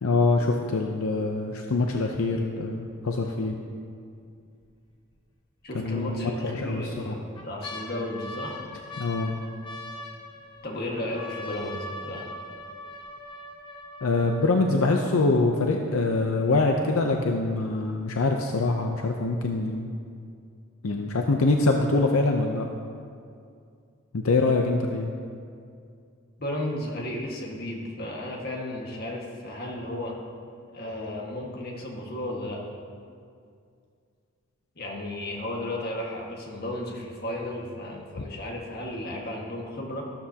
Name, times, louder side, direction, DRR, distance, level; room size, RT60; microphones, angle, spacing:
voice 1, 0.0-3.6 5.7-7.2 9.0-9.4 14.0-19.9 20.8-22.7 24.1-25.1, left 3 dB, 75° left, 3 dB, 0.7 m, -24 dB
sound 1, 4.1-4.6 5.1-5.2 6.1-6.6 7.1-15.1 15.8-16.5 17.0-17.1, left 1 dB, 20° left, 1.0 m, -41 dB
voice 2, 5.6-8.6 10.6-12.3 26.4-30.1 30.7-32.6 34.7-40.0, left 1 dB, 45° left, -2 dB, 1.7 m, -34 dB
13.0 x 12.5 x 2.9 m, 2.3 s
head